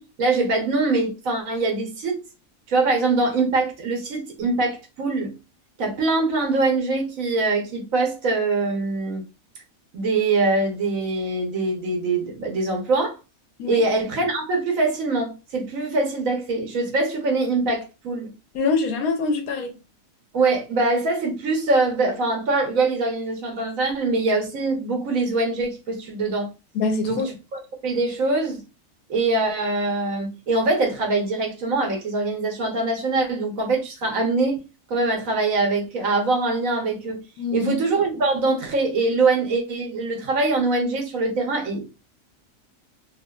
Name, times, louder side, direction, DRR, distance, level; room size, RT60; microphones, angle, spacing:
voice 1, 0.0-2.2 2.7-5.4 5.8-9.2 9.9-13.2 13.7-18.3 20.3-26.5 27.1-28.6 29.1-34.6 34.9-37.2 37.5-41.9, right 3 dB, 75° right, 1.3 m, -23 dB
voice 2, 18.5-19.8 26.7-27.3 37.4-37.7, left 4 dB, 85° left, 1.2 m, -24 dB
3.0 x 2.8 x 2.3 m
omnidirectional pair, 1.5 m